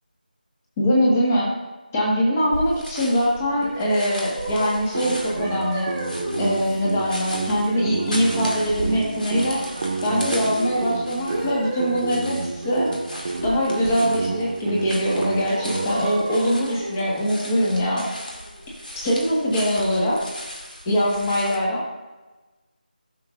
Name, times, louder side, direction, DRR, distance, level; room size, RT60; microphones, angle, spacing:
voice 1, 0.8-1.5 1.9-5.9 6.4-9.6 10.0-12.4 12.6-12.9 13.4-18.0 18.9-20.2 20.8-21.8, equal, 15° left, -5 dB, 1.4 m, -22 dB
sound 1, 2.5-21.6, left 1 dB, 65° left, 2.4 m, -37 dB
sound 2, 3.6-12.1 12.6-13.0 13.3-14.6 15.1-18.8, right 1 dB, 10° right, 1.8 m, -35 dB
sound 3, 4.9-15.9, right 3 dB, 25° right, 0.4 m, -30 dB
14.5 x 6.6 x 2.5 m, 1.2 s
figure-of-eight pair, 170°, 5 cm